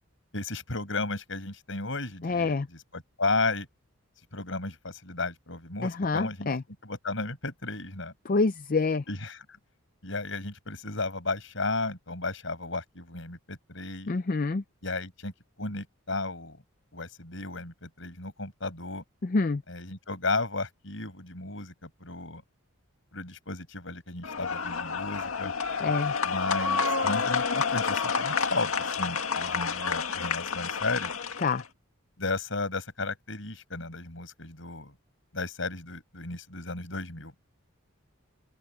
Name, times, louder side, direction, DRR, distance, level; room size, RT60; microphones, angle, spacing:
voice 1, 0.3-2.6 3.2-3.7 4.3-6.5 6.8-8.1 9.1-9.4 10.0-14.1 14.8-15.3 15.6-16.6 16.9-19.0 19.7-22.4 23.1-25.5 26.2-31.1 32.2-34.9 35.3-37.3, left 3 dB, 60° left, 6.2 m, -34 dB
voice 2, 2.2-2.7 5.8-6.6 8.2-9.0 14.1-14.6 19.2-19.6 25.8-26.1 31.4-31.6, left 3 dB, 40° left, 0.5 m, -27 dB
sound 1, 24.2-31.6, left 5 dB, 75° left, 2.0 m, -29 dB
open air
head